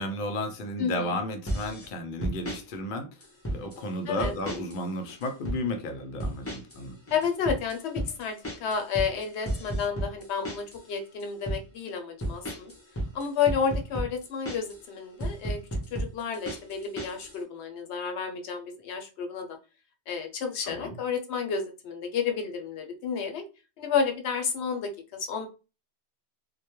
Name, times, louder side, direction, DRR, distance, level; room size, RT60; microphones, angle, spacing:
voice 1, 0.0-3.1 3.5-7.0 20.7-20.9, left 1 dB, 60° left, 5 dB, 0.6 m, -33 dB
voice 2, 0.8-1.2 4.1-4.3 7.1-8.3 8.6-12.7 13.1-15.6 15.9-19.6 20.1-23.4 23.8-24.9 25.3-25.5, left 6 dB, 85° left, 5 dB, 0.9 m, -31 dB
sound 1, 1.5-1.9 2.2-2.6 3.2-3.8 4.2-4.8 5.1-5.6 6.2-6.8 7.1-10.8 11.2-11.6 12.2-14.8 15.2-17.4, right 1 dB, 20° left, 0.4 m, -33 dB
2.2 x 2.1 x 2.9 m, 0.32 s
omnidirectional pair, 1.1 m